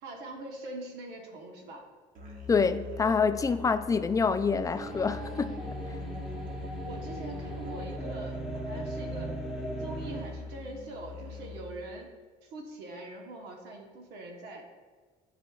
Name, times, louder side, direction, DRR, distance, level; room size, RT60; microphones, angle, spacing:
voice 1, 0.0-1.8 6.8-8.4 8.6-9.4 9.8-12.1 12.4-14.7, right 2 dB, 85° right, 2 dB, 1.1 m, -42 dB
Musical instrument, 2.2-11.9, left 2 dB, 50° right, 1.2 m, -42 dB
voice 2, 2.5-5.6, left 5 dB, 20° left, 11 dB, 0.3 m, -26 dB
sound 1, 4.7-10.2, right 1 dB, 5° right, 1.0 m, -38 dB
11.5 x 4.1 x 2.3 m, 1.5 s
cardioid pair, 110°, 17 cm